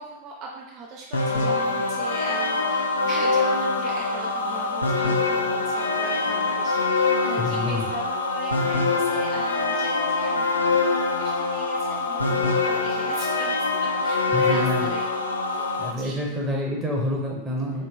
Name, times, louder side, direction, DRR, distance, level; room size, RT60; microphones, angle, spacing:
voice 1, 0.0-13.6 13.8-16.4, right 3 dB, 40° right, -2 dB, 0.4 m, -39 dB
sound 1, 1.1-15.9, left 3 dB, 75° left, 0.4 m, -24 dB
voice 2, 7.4-7.8 14.3-14.9 15.8-17.9, left 1 dB, 10° right, -3 dB, 0.9 m, -27 dB
4.4 x 3.0 x 2.2 m, 0.94 s
figure-of-eight pair, 90°, 0 cm